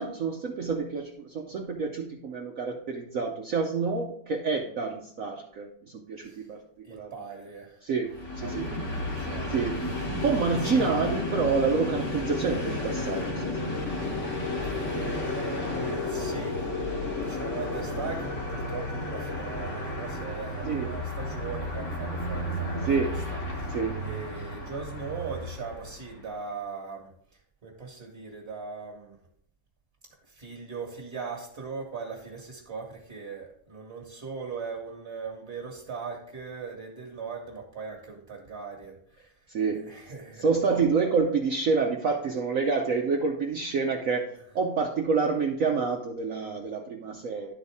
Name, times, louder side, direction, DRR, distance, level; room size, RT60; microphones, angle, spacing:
voice 1, 0.0-5.7 6.1-6.6 6.9-7.1 7.8-8.7 9.5-9.8 10.1-13.7 20.6-20.9 22.9-23.1 23.7-24.0 39.5-39.8 40.4-47.5, right 5 dB, 70° right, 2 dB, 0.7 m, -28 dB
voice 2, 6.2-6.5 6.8-7.8 8.4-9.9 10.6-10.9 14.6-16.7 17.0-29.2 30.2-40.5, right 5 dB, 35° right, -1 dB, 1.5 m, -40 dB
Train, 8.1-26.2, left 1 dB, 40° left, 1.3 m, -32 dB
11.5 x 4.0 x 3.5 m, 0.66 s
omnidirectional pair, 2.2 m